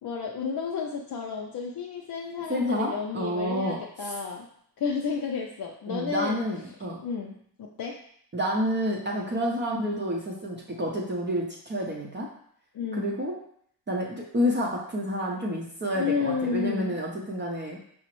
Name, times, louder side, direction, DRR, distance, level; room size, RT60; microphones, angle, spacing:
voice 1, 0.0-4.5 4.8-6.4 7.0-8.0 12.7-13.1 15.9-17.0, left 5 dB, 60° left, -1 dB, 0.5 m, -31 dB
voice 2, 2.5-4.1 5.9-7.0 8.3-12.3 12.9-13.4 13.9-17.8, equal, 30° right, -2 dB, 0.6 m, -29 dB
4.9 x 2.0 x 3.0 m, 0.66 s
cardioid pair, 90°, 39 cm